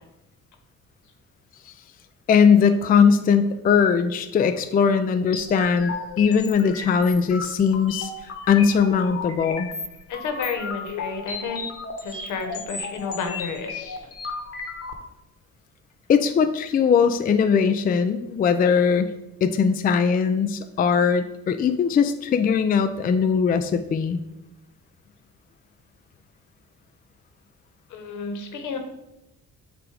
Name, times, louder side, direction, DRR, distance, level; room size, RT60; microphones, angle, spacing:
voice 1, 2.3-8.1 8.5-9.7 16.1-19.1 19.4-24.2, left 6 dB, 30° left, 9 dB, 0.4 m, -20 dB
sound 1, 5.3-14.9, left 4 dB, 50° left, 1.0 m, -34 dB
voice 2, 10.1-11.7 12.0-14.1 27.9-28.8, left 5 dB, 75° left, 5 dB, 1.1 m, -31 dB
7.6 x 2.6 x 4.8 m, 0.92 s
cardioid pair, 90°, 30 cm